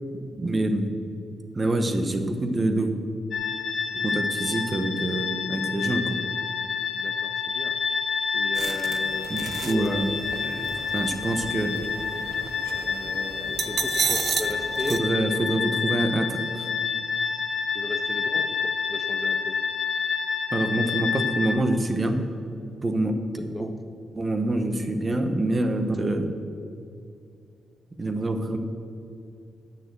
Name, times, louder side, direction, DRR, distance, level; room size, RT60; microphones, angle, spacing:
voice 1, 0.4-0.9 1.6-2.9 3.9-6.2 9.3-10.1 10.9-11.7 14.9-16.7 20.5-22.2 22.8-23.7 24.1-26.3 28.0-28.6, right 1 dB, 25° right, 7 dB, 0.9 m, -26 dB
sound 1, 3.3-21.5, left 6 dB, 65° left, 1.8 m, -28 dB
voice 2, 6.9-7.8 8.3-10.1 10.4-10.8 12.7-15.5 17.7-19.6 23.4-23.8, left 2 dB, 15° left, 6 dB, 0.6 m, -37 dB
sound 2, 8.5-15.0, right 7 dB, 60° right, 0.5 m, -33 dB
9.7 x 6.7 x 7.7 m, 2.5 s
cardioid pair, 130°, 0 cm